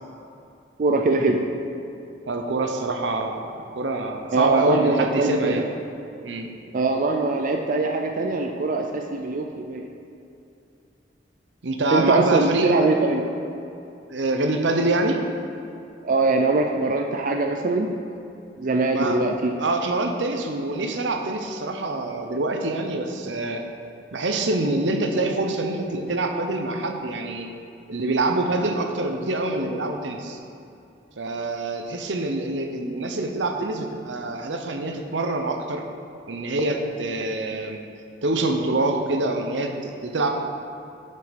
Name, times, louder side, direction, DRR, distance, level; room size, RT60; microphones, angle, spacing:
voice 1, 0.8-1.4 4.3-5.7 6.7-9.9 11.9-13.3 16.0-17.9 18.6-19.5, right 3 dB, 50° right, 3 dB, 0.5 m, -22 dB
voice 2, 2.3-5.6 6.2-6.5 11.6-13.1 14.1-15.2 18.9-19.2 19.6-23.6 24.1-27.5 27.9-30.4 31.2-35.8 36.3-37.8 38.2-40.4, right 2 dB, 85° right, 4 dB, 0.8 m, -25 dB
7.7 x 5.6 x 5.1 m, 2.7 s
head